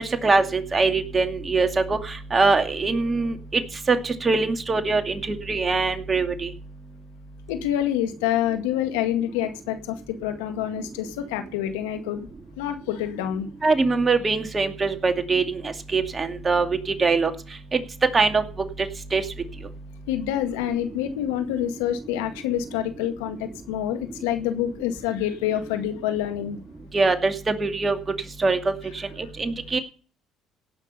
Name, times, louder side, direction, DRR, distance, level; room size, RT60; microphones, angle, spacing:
voice 1, 0.2-2.0 2.3-3.6 3.9-5.2 5.5-6.5 13.6-15.6 15.9-16.7 17.0-17.3 17.7-17.8 18.1-18.4 19.1-19.2 26.9-28.0 28.4-28.7 29.4-29.8, right 4 dB, 30° right, 6 dB, 2.4 m, -22 dB
voice 2, 7.5-12.3 12.6-13.5 20.1-26.6, left 11 dB, 90° left, 7 dB, 1.9 m, -27 dB
17.0 x 6.3 x 6.9 m, 0.38 s
supercardioid pair, 65°, 0 cm